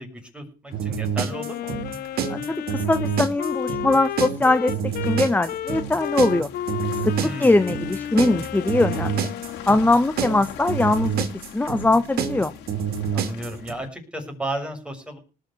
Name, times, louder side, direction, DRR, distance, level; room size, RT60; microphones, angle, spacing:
voice 1, 0.0-1.8 7.2-7.7 13.1-15.2, right 1 dB, 5° right, 3 dB, 6.6 m, -33 dB
Car passing by / Engine, 0.7-13.9, left 8 dB, 90° left, 4.1 m, -44 dB
sound 1, 0.7-13.7, right 7 dB, 65° right, 2.8 m, -27 dB
Wind instrument woodwind instrument, 1.3-9.8, left 11 dB, 65° left, 1.1 m, -32 dB
voice 2, 2.7-4.8 5.0-6.5 7.0-7.1 7.4-9.2 9.7-11.3 11.5-12.5, left 2 dB, 10° left, 11 dB, 1.1 m, -21 dB
19.0 x 6.9 x 8.3 m, 0.36 s
cardioid pair, 110°, 17 cm